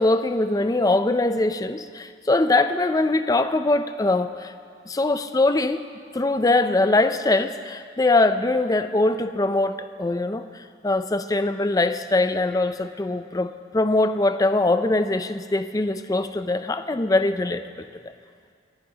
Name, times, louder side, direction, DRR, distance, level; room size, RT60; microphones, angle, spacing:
voice 1, 0.0-4.5 4.9-5.8 6.1-17.6, left 2 dB, 20° left, 10 dB, 0.4 m, -22 dB
27.5 x 11.0 x 2.9 m, 2.2 s
head